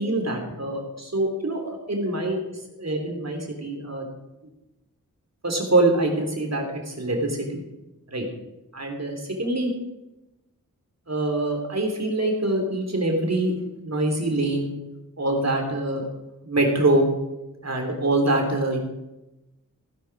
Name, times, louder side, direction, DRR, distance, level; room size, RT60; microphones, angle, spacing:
voice 1, 0.0-2.4 2.8-4.1 5.4-7.6 8.1-8.2 8.7-9.7 11.1-13.5 13.8-14.7 15.2-16.1 16.4-17.1 17.6-18.8, right 2 dB, 50° right, 2 dB, 3.7 m, -24 dB
16.5 x 10.0 x 5.0 m, 0.98 s
cardioid pair, 40°, 34 cm